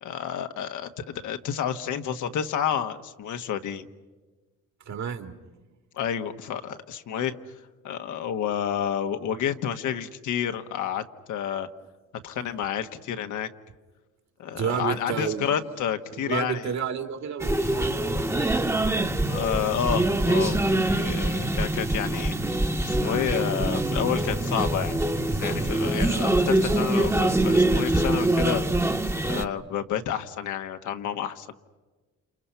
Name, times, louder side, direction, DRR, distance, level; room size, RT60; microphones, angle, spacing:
voice 1, 0.0-3.9 6.0-7.4 7.8-11.7 12.2-13.5 14.4-16.7 19.3-24.9 25.3-28.6 29.2-31.5, left 9 dB, 80° left, 7 dB, 1.4 m, -30 dB
voice 2, 4.9-5.3 14.5-15.5 16.1-18.1 25.4-25.5 25.9-26.0, right 8 dB, 65° right, 7 dB, 2.2 m, -31 dB
sound 1, 17.4-29.4, right 1 dB, 10° right, 1.0 m, -24 dB
30.0 x 28.0 x 5.7 m, 1.3 s
cardioid pair, 90°, 30 cm